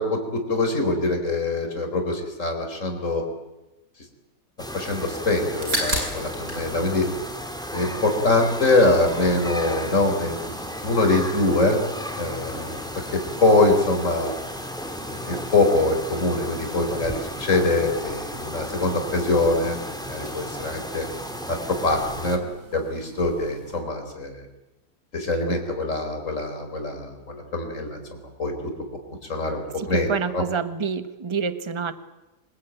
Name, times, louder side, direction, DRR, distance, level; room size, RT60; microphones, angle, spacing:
voice 1, 0.0-3.2 4.7-7.1 7.7-10.5 10.8-11.8 12.2-12.8 13.1-14.3 15.1-21.1 21.5-21.6 21.8-22.4 22.7-24.5 25.1-28.5 29.3-30.4, left 2 dB, 50° left, 4 dB, 4.6 m, -23 dB
sound 1, 4.6-22.4, equal, ahead, 2.6 m, -34 dB
sound 2, 5.6-6.7 6.9-8.0 8.3-23.8, right 1 dB, 60° right, 7.0 m, -38 dB
voice 2, 29.8-31.9, right 5 dB, 20° right, 11 dB, 1.1 m, -27 dB
26.5 x 20.0 x 9.2 m, 0.99 s
omnidirectional pair, 1.7 m